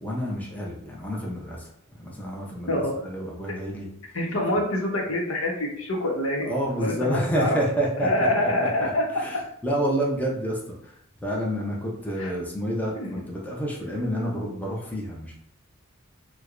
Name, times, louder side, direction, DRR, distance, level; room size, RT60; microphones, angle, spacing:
voice 1, 0.0-3.9 6.5-8.3 8.6-10.9 11.2-15.3, equal, 10° left, -3 dB, 0.6 m, -29 dB
voice 2, 4.1-6.5 6.8-7.6 8.0-9.0 12.2-12.3 13.0-13.1, left 1 dB, 75° left, -1 dB, 0.8 m, -25 dB
4.4 x 2.1 x 2.4 m, 0.71 s
head